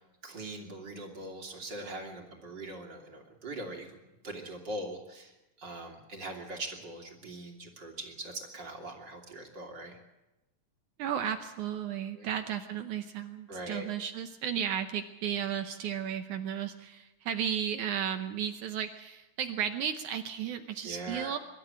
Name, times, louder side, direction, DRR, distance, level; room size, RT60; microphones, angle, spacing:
voice 1, 0.2-3.9 4.2-5.3 5.6-10.0 12.1-12.3 13.5-13.9 20.8-21.3, right 2 dB, 35° right, 1 dB, 3.2 m, -41 dB
voice 2, 11.0-21.4, right 9 dB, 70° right, 7 dB, 2.2 m, -34 dB
24.0 x 12.5 x 8.9 m, 1.0 s
omnidirectional pair, 3.9 m